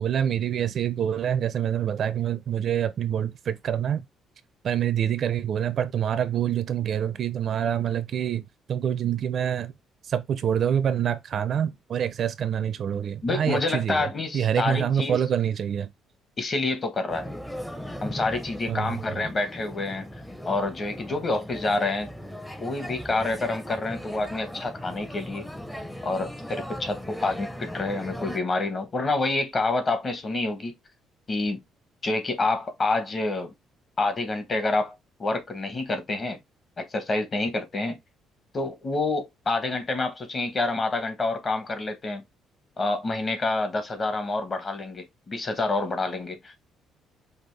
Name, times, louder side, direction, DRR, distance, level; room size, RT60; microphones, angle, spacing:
voice 1, 0.0-4.0 4.6-9.7 10.0-15.9 18.7-19.3, right 9 dB, 50° right, 0.4 m, -26 dB
voice 2, 13.2-15.2 16.4-17.3 18.0-20.0 20.5-22.1 22.6-25.5 26.0-30.7 31.3-31.6 32.0-33.5 34.0-34.9 35.2-36.4 36.8-38.0 38.5-42.2 42.8-46.6, left 2 dB, 30° left, 1.0 m, -28 dB
sound 1, 17.1-28.4, equal, 5° left, 0.6 m, -38 dB
5.2 x 2.4 x 3.2 m
cardioid pair, 135°, 0 cm